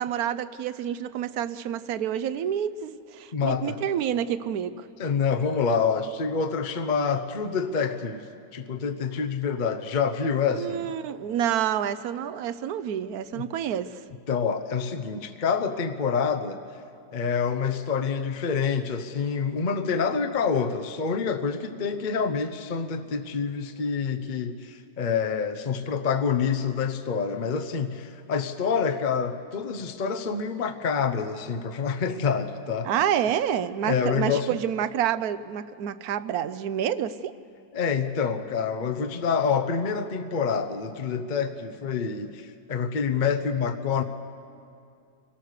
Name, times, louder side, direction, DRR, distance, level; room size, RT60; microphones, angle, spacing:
voice 1, 0.0-4.8 10.5-14.0 32.8-37.3, right 9 dB, 75° right, 12 dB, 1.1 m, -28 dB
voice 2, 3.3-3.8 5.0-8.2 8.5-11.0 13.3-13.4 14.3-16.6 17.1-32.9 33.8-34.6 37.7-44.0, left 6 dB, 40° left, 6 dB, 0.8 m, -27 dB
25.5 x 17.0 x 6.6 m, 2.4 s
omnidirectional pair, 1.7 m